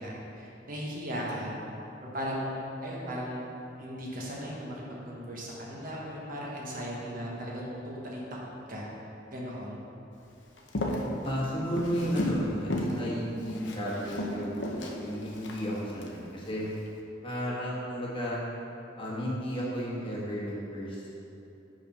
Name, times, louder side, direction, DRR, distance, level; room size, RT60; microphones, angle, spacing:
voice 1, 0.0-1.5 2.0-3.5 3.8-8.2 8.7-8.8 9.3-9.8, equal, 50° right, -4 dB, 1.3 m, -37 dB
Walk footsteps, 10.6-12.4 12.7-13.0 13.4-16.1 16.6-16.9, left 1 dB, 70° left, 0.8 m, -34 dB
voice 2, 11.2-16.7 17.2-18.4 19.0-21.3, equal, 30° left, -6 dB, 1.3 m, -33 dB
5.5 x 5.4 x 5.4 m, 2.9 s
head